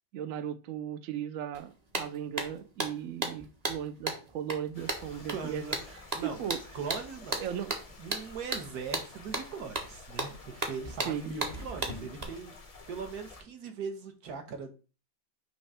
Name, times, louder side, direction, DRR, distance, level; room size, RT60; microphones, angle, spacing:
voice 1, 0.1-5.6 6.2-6.6 7.4-7.8 10.6-10.7 11.0-11.4, right 9 dB, 85° right, 11 dB, 0.7 m, -37 dB
sound 1, 1.5-1.6 1.9-12.2, right 2 dB, 25° right, 0.9 m, -36 dB
sound 2, 4.7-13.4, left 3 dB, 70° left, 0.3 m, -51 dB
voice 2, 5.3-6.4 6.7-7.4 8.0-12.5 12.9-14.7, right 5 dB, 55° right, 6 dB, 1.4 m, -40 dB
6.2 x 3.1 x 5.5 m, 0.34 s
omnidirectional pair, 2.1 m